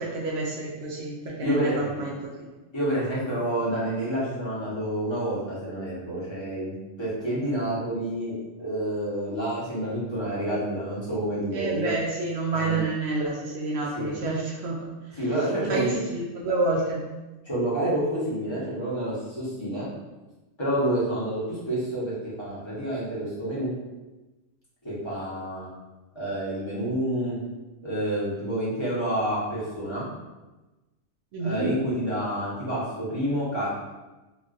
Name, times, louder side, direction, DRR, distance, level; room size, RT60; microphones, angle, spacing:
voice 1, 0.0-2.5 11.5-14.9 15.6-17.0 31.3-31.7, right 3 dB, 65° right, -3 dB, 0.7 m, -29 dB
voice 2, 1.4-2.0 2.7-11.9 12.5-12.8 13.9-14.2 15.1-16.0 17.4-19.9 20.6-22.1 22.4-23.7 24.8-25.7 26.1-27.4 27.8-30.1 31.4-33.7, right 1 dB, 25° left, -9 dB, 0.9 m, -28 dB
3.1 x 2.5 x 2.4 m, 1.1 s
omnidirectional pair, 1.4 m